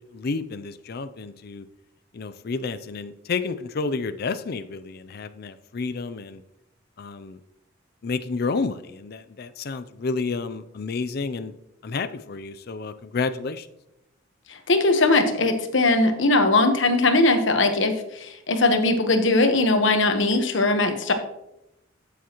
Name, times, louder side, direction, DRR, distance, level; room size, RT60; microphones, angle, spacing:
voice 1, 0.1-1.6 2.1-6.4 7.0-7.4 8.0-11.5 11.8-13.7, left 4 dB, 55° left, 11 dB, 0.5 m, -30 dB
voice 2, 14.5-21.1, left 2 dB, 70° left, 6 dB, 1.2 m, -20 dB
12.5 x 7.1 x 3.0 m, 0.86 s
head